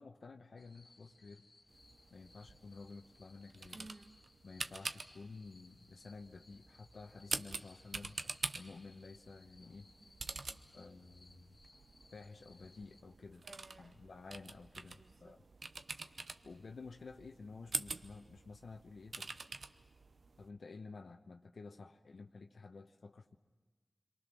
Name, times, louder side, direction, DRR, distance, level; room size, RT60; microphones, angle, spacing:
voice 1, 0.0-1.4 2.1-3.9 4.4-9.9 10.7-11.6 12.1-13.4 13.8-15.4 16.4-19.4 20.4-23.3, left 4 dB, 85° left, 4 dB, 1.0 m, -52 dB
sound 1, 0.6-13.0, left 3 dB, 65° left, 1.5 m, -66 dB
sound 2, 1.7-20.5, right 4 dB, 80° right, 0.8 m, -47 dB
voice 2, 3.7-4.2 10.0-11.0 13.4-14.0 15.0-15.7, right 2 dB, 55° right, 7 dB, 1.4 m, -58 dB
28.5 x 23.0 x 6.2 m, 1.3 s
cardioid pair, 50°, 0 cm